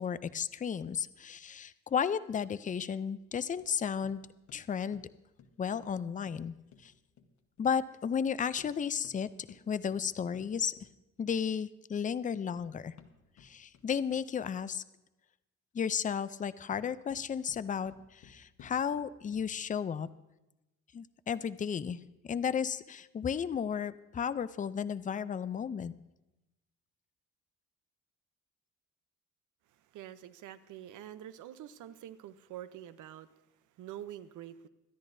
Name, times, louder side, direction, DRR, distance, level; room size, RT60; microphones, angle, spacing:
voice 1, 0.0-4.2 4.5-5.0 5.6-6.5 6.8-6.9 7.6-10.7 11.2-12.9 13.4-14.8 15.7-20.1 20.9-26.0, left 7 dB, 25° left, 15 dB, 0.4 m, -34 dB
sound 1, 3.6-7.8 8.4-11.5 12.2-14.5 16.5-19.7, left 6 dB, 70° left, 1.2 m, -60 dB
voice 2, 29.7-34.7, right 11 dB, 80° right, 13 dB, 0.7 m, -47 dB
23.5 x 10.5 x 2.7 m, 1.0 s
cardioid pair, 90°, 30 cm